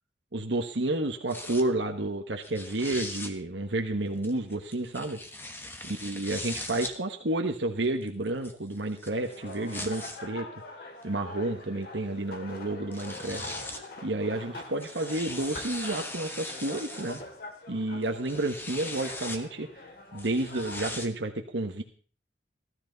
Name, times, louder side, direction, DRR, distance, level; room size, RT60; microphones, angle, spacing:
voice 1, 0.3-5.2 5.8-10.5 11.0-13.5 14.0-17.2 17.7-19.8 20.1-21.8, right 2 dB, 75° right, 4 dB, 1.3 m, -31 dB
sound 1, 1.3-1.6 2.4-3.3 4.2-6.9 7.8-10.2 11.0-11.1 12.6-12.7 12.9-13.9 14.6-17.2 18.0-19.4 20.2-21.1, left 2 dB, 10° left, 1.2 m, -40 dB
sound 2, 9.1-20.9, left 2 dB, 55° left, 2.4 m, -44 dB
16.5 x 13.0 x 4.0 m, 0.42 s
head